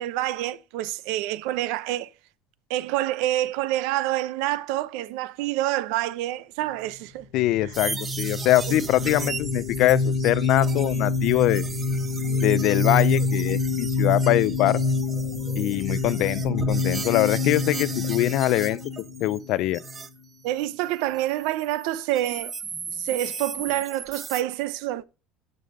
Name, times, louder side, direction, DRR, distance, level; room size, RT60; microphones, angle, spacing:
voice 1, 0.0-2.1 2.7-7.3 7.6-7.7 8.7-9.4 12.2-12.4 20.4-22.5 22.9-25.0, right 15 dB, 70° right, 0.7 m, -28 dB
voice 2, 7.3-11.6 12.4-14.8 15.6-18.8 19.2-19.8, left 15 dB, 50° left, 0.5 m, -23 dB
sound 1, 7.5-19.9, left 3 dB, 85° left, 1.5 m, -27 dB
sound 2, 7.7-20.1 20.4-24.4, right 5 dB, 20° right, 0.6 m, -37 dB
11.5 x 5.5 x 5.4 m
cardioid pair, 165°, 0 cm